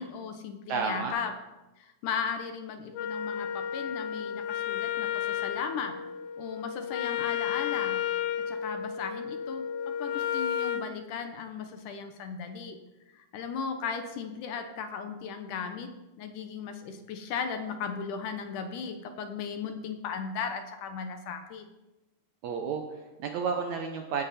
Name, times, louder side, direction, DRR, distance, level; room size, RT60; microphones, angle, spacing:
voice 1, 0.0-1.3 1.8-5.9 6.4-8.0 8.4-12.8 13.1-15.9 16.2-21.7, left 6 dB, 70° left, 6 dB, 2.2 m, -36 dB
voice 2, 0.7-1.1 22.4-24.2, right 5 dB, 75° right, 4 dB, 1.7 m, -31 dB
Wind instrument woodwind instrument, 2.9-10.9, left 9 dB, 85° left, 2.6 m, -32 dB
16.5 x 8.8 x 4.2 m, 1.1 s
omnidirectional pair, 4.1 m